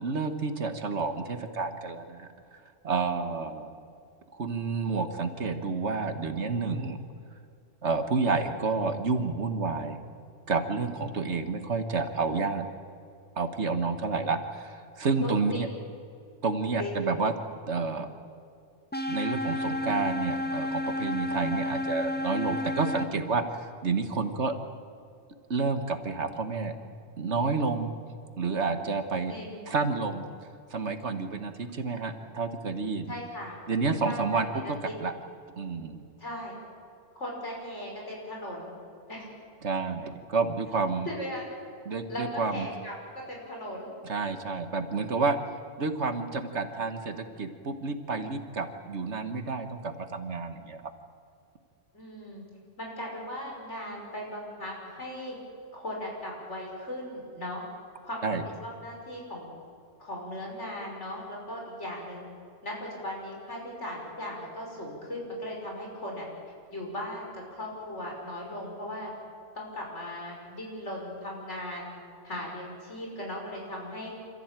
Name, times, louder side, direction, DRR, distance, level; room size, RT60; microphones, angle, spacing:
voice 1, 0.0-3.7 4.3-7.0 7.8-10.0 10.5-12.6 13.3-15.7 16.4-17.3 17.7-18.1 19.1-24.5 25.5-26.8 27.2-27.9 28.4-29.3 29.7-30.3 30.7-33.1 33.7-35.1 35.6-36.0 39.6-41.1 41.9-42.7 44.1-45.4 45.8-50.9 58.2-58.4, right 4 dB, 65° right, 8 dB, 1.7 m, -30 dB
voice 2, 15.2-15.7 16.8-17.0 29.3-29.6 33.1-33.6 34.0-34.9 36.2-36.6 37.1-38.7 39.1-39.3 41.0-41.5 41.9-43.9 51.9-52.4 52.8-55.4 55.7-57.6 58.0-58.3 58.6-59.5 60.0-62.3 62.6-66.3 66.7-69.1 69.5-71.9 72.2-74.1, left 1 dB, 65° left, -2 dB, 6.2 m, -38 dB
sound 1, 18.9-23.0, left 1 dB, 10° left, 1.1 m, -31 dB
27.5 x 14.5 x 9.0 m, 2.5 s
omnidirectional pair, 1.3 m